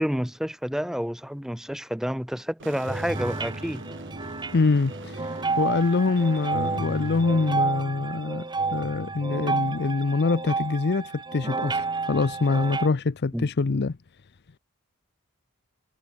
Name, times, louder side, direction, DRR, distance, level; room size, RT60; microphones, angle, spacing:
voice 1, 0.0-3.8 13.3-13.5, equal, ahead, 1.4 m, -29 dB
sound 1, 2.6-7.6, right 2 dB, 60° right, 7.7 m, -43 dB
sound 2, 2.9-12.9, right 3 dB, 20° right, 1.2 m, -30 dB
voice 2, 4.5-5.1 5.6-14.0, left 3 dB, 50° left, 0.6 m, -25 dB
head